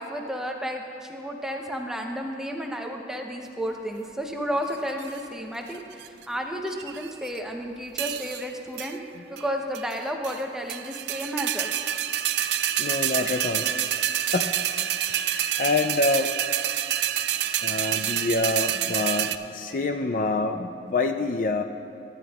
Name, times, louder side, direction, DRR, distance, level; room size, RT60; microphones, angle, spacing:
voice 1, 0.0-9.0 9.3-11.8, equal, 5° right, 1 dB, 0.7 m, -32 dB
sound 1, 4.7-5.2 5.7-6.2 6.7-7.4 8.0-8.5 8.8-8.9 9.4-9.5 9.7-10.4 10.7-19.4, right 11 dB, 75° right, 0.4 m, -28 dB
voice 2, 12.4-13.7 14.3-14.5 15.1-16.3 17.6-21.6, left 3 dB, 50° left, 7 dB, 0.4 m, -27 dB
23.0 x 10.0 x 2.4 m, 2.5 s
head